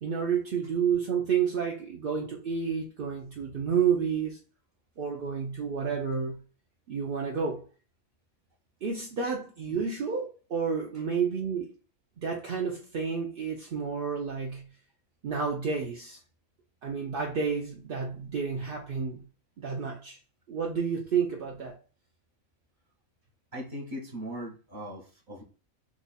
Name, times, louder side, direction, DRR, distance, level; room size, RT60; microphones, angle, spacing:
voice 1, 0.0-4.4 5.0-6.4 6.9-7.6 8.8-11.7 12.2-14.7 15.2-16.2 16.8-19.2 19.6-20.2 20.5-21.8, right 6 dB, 60° right, 0.6 m, -30 dB
voice 2, 23.5-25.4, equal, 40° right, 1.1 m, -39 dB
2.9 x 2.4 x 3.9 m
omnidirectional pair, 1.5 m